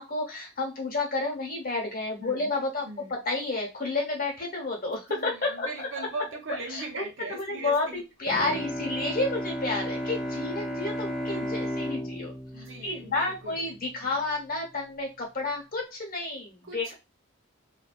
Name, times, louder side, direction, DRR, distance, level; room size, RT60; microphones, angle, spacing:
voice 1, 0.0-2.9 3.2-5.9 6.5-16.9, left 3 dB, 40° left, -1 dB, 1.0 m, -31 dB
voice 2, 2.2-2.5 2.8-3.2 5.1-8.0 11.2-11.5 12.5-14.1 16.6-16.9, right 3 dB, 60° right, 2 dB, 0.7 m, -40 dB
Bowed string instrument, 8.3-13.9, equal, ahead, 0.4 m, -34 dB
2.6 x 2.3 x 2.3 m, 0.25 s
head